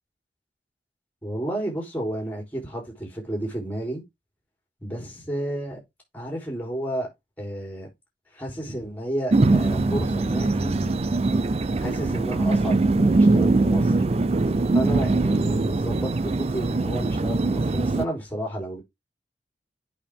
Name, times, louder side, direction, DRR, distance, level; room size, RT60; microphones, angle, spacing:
voice 1, 1.2-4.0 4.8-5.8 6.1-7.1 7.4-7.9 8.3-11.0 11.8-14.0 14.7-18.8, right 1 dB, 10° left, 3.7 m, -31 dB
sound 1, 9.3-18.0, right 3 dB, 35° right, 0.4 m, -22 dB
8.5 x 5.7 x 3.7 m
head